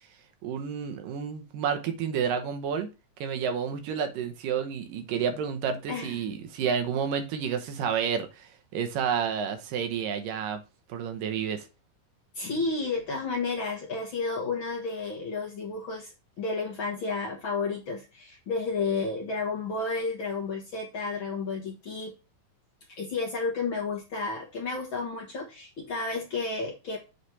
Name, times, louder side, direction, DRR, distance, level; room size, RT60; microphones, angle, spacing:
voice 1, 0.4-2.9 3.2-10.6 10.9-11.6, right 7 dB, 90° right, 2.7 m, -30 dB
voice 2, 5.9-6.3 12.3-16.1 16.4-22.1 23.0-27.0, left 4 dB, 50° left, 1.6 m, -31 dB
8.0 x 3.4 x 5.9 m
omnidirectional pair, 3.8 m